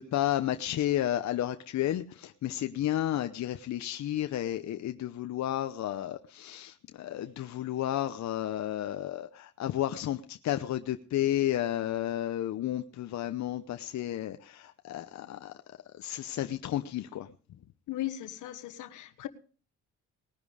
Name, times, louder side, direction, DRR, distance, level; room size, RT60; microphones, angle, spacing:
voice 1, 0.0-15.5 16.0-17.3, left 12 dB, 65° left, 0.8 m, -32 dB
voice 2, 17.9-19.3, left 14 dB, 80° left, 1.4 m, -37 dB
19.5 x 10.5 x 5.0 m
cardioid pair, 90°, 30 cm